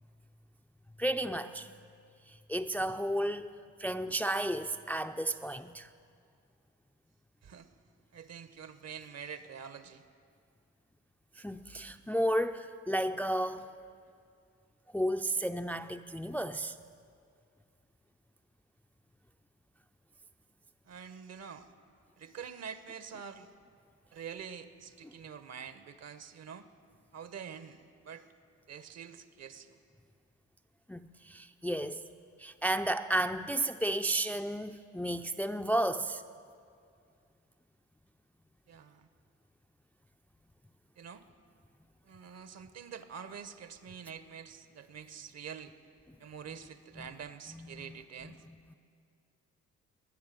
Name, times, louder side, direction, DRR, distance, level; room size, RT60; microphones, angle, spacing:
voice 1, 1.0-1.7 2.5-3.5 3.8-5.9 11.4-13.7 14.9-16.7 30.9-32.0 32.4-36.2, right 1 dB, 5° left, 8 dB, 0.4 m, -32 dB
voice 2, 8.1-10.0 20.9-21.7 22.2-23.5 24.1-26.7 27.1-28.3 28.7-29.8 38.7-39.1 41.0-41.3 42.0-45.7 46.2-48.4, right 7 dB, 55° right, 12 dB, 1.0 m, -46 dB
20.5 x 6.9 x 9.3 m, 2.3 s
cardioid pair, 90°, 30 cm